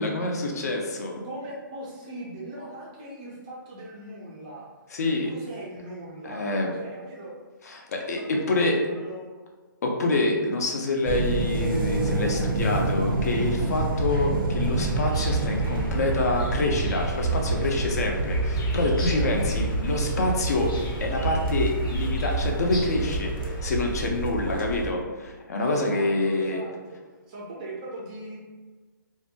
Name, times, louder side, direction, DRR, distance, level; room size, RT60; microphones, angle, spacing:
voice 1, 0.0-1.2 4.9-5.3 6.2-6.8 7.6-8.8 9.8-26.6, left 2 dB, 50° left, 1 dB, 0.4 m, -27 dB
voice 2, 1.2-4.6 5.0-6.5 6.7-7.3 8.2-9.3 17.7-18.1 18.8-20.1 24.3-24.9 25.6-27.0 27.3-28.4, right 1 dB, 20° right, -4 dB, 0.4 m, -40 dB
sound 1, 11.1-24.9, right 2 dB, 85° right, 0.5 m, -27 dB
sound 2, 14.8-23.8, left 2 dB, 90° left, 0.7 m, -40 dB
2.5 x 2.1 x 2.6 m, 1.3 s
hypercardioid pair, 170°, 11 cm